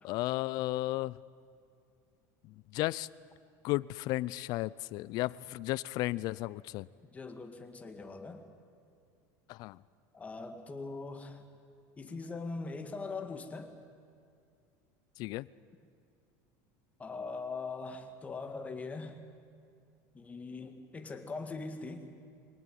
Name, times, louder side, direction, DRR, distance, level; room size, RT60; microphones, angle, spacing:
voice 1, 0.0-1.2 2.7-3.1 3.6-6.9 9.5-9.8 15.2-15.5, left 18 dB, 55° left, 21 dB, 0.5 m, -34 dB
voice 2, 7.1-8.4 10.1-11.4 12.0-13.7 17.0-19.2 20.1-22.1, left 3 dB, 20° left, 6 dB, 2.0 m, -41 dB
24.0 x 18.0 x 9.3 m, 2.4 s
supercardioid pair, 140°, 8 cm